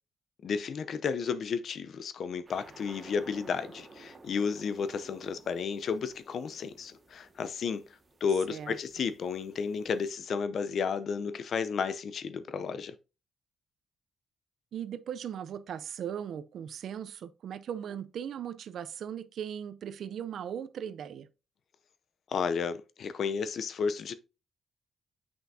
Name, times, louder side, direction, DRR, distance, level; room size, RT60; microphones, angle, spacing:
voice 1, 0.4-7.8 8.2-12.9 22.3-24.1, left 6 dB, 60° left, 0.7 m, -32 dB
sound 1, 2.5-10.1, right 3 dB, 30° right, 1.8 m, -54 dB
voice 2, 14.7-21.3, right 9 dB, 70° right, 0.6 m, -38 dB
8.0 x 5.8 x 2.7 m
cardioid pair, 85°, 0 cm